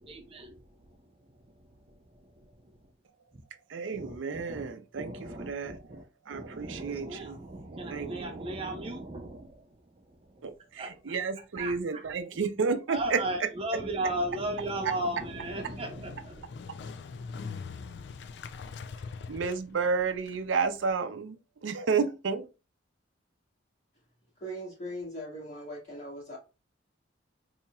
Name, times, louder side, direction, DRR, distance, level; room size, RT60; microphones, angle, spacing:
voice 1, 0.0-2.8 3.3-3.4 3.9-4.7 4.9-10.4 10.8-11.2 11.6-12.0 12.9-16.5, right 1 dB, 30° right, 0.5 m, -37 dB
voice 2, 3.7-5.8 6.3-7.4 7.7-8.5 10.4-13.2 19.3-22.5, right 5 dB, 85° right, 0.5 m, -31 dB
Motorcycle, 14.2-20.9, left 5 dB, 60° left, 0.3 m, -43 dB
voice 3, 24.4-26.4, equal, 35° left, 1.9 m, -39 dB
4.2 x 2.8 x 2.3 m
head